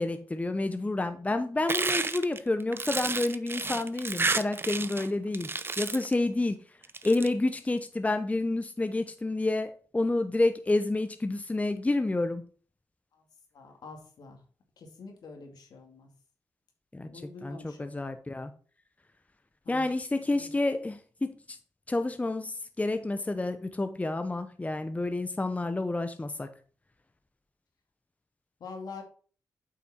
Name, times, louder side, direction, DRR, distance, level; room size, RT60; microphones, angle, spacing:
voice 1, 0.0-5.5 5.8-6.6 7.0-12.4 16.9-17.1 17.4-18.5 19.7-21.6 21.9-26.5, left 2 dB, 20° left, 8 dB, 0.8 m, -29 dB
sound 1, 1.7-5.1 5.3-6.1 6.8-7.3, right 3 dB, 35° right, 0.7 m, -31 dB
voice 2, 13.5-14.4 14.8-16.1 17.1-18.1 19.6-19.8 20.3-20.5 28.6-29.0, left 4 dB, 75° left, 3 dB, 2.3 m, -45 dB
8.2 x 5.7 x 4.3 m, 0.41 s
cardioid pair, 55°, 7 cm